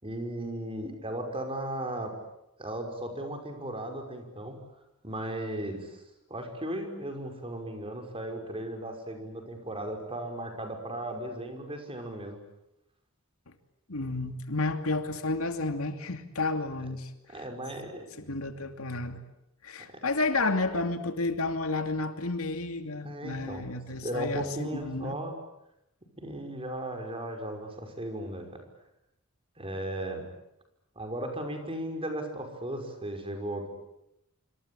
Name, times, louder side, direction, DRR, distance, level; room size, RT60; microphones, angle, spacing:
voice 1, 0.0-2.2 2.6-4.6 5.0-6.0 6.3-12.4 17.3-18.1 19.9-20.0 23.0-23.6 24.0-25.3 26.2-28.6 29.6-30.2 31.0-33.7, right 1 dB, 25° right, 5 dB, 5.5 m, -36 dB
voice 2, 13.9-17.5 18.2-19.2 19.6-25.1, left 3 dB, 75° left, 7 dB, 2.6 m, -31 dB
26.5 x 26.0 x 8.7 m, 0.85 s
head